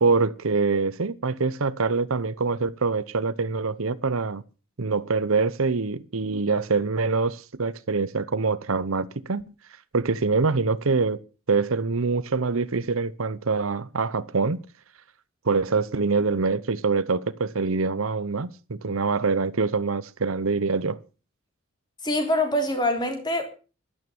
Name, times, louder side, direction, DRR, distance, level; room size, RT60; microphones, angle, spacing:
voice 1, 0.0-4.4 4.8-9.4 9.9-11.2 11.5-14.6 15.4-21.0, right 4 dB, 75° right, 0.8 m, -25 dB
voice 2, 22.0-23.4, left 1 dB, 20° left, 3.4 m, -24 dB
12.5 x 12.5 x 7.1 m
head